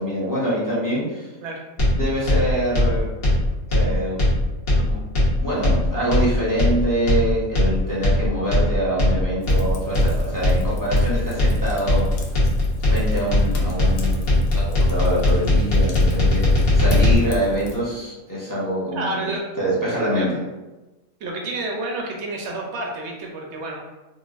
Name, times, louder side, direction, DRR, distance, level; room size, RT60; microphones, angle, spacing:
voice 1, 0.0-1.3 1.9-3.1 3.7-4.2 4.8-5.0 5.4-12.1 12.8-16.4 16.7-19.3 19.6-20.3, right 1 dB, 20° left, -8 dB, 0.7 m, -25 dB
sound 1, 1.8-17.1, left 1 dB, 45° left, 1.1 m, -19 dB
Fire, 9.4-17.8, equal, 90° left, 1.1 m, -37 dB
voice 2, 18.9-19.5 20.1-20.3 21.2-23.8, right 2 dB, 65° right, 0 dB, 0.7 m, -29 dB
3.9 x 2.2 x 2.4 m, 1.1 s
omnidirectional pair, 1.4 m